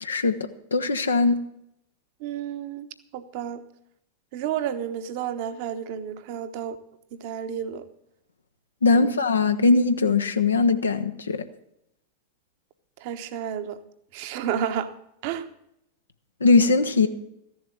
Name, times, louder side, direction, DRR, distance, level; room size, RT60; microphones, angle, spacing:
voice 1, 0.0-1.4 8.8-11.4 16.4-17.1, left 4 dB, 75° left, 0.8 m, -20 dB
voice 2, 2.2-3.6 4.3-6.8 7.1-7.9 8.9-9.1 13.0-13.8 14.1-14.9 15.2-15.5, right 9 dB, 50° right, 1.0 m, -31 dB
14.0 x 7.2 x 7.5 m
figure-of-eight pair, 90°, 0 cm